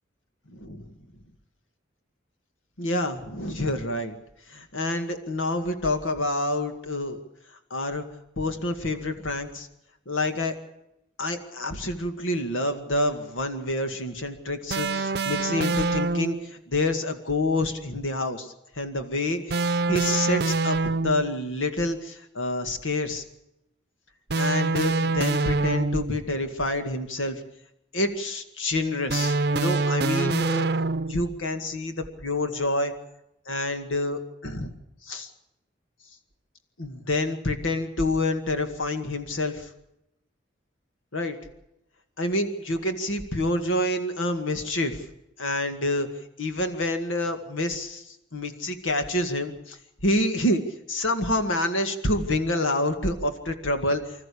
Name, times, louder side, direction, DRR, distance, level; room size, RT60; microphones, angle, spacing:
voice 1, 0.5-0.8 2.8-4.1 4.5-7.2 7.7-8.0 8.4-9.7 10.1-10.5 11.2-16.4 16.7-23.2 24.4-27.4 27.9-30.7 31.1-32.9 33.5-34.7 35.1-35.3 36.8-39.6 41.1-41.4 42.2-45.0 45.4-46.1 46.4-48.0 48.3-49.8 50.0-50.6 50.9-54.0, left 1 dB, 85° left, 7 dB, 2.1 m, -27 dB
sound 1, 14.7-16.5 19.5-21.4 24.3-26.2 29.1-31.3, right 3 dB, 55° right, 0.7 m, -25 dB
26.0 x 14.0 x 8.6 m, 0.85 s
head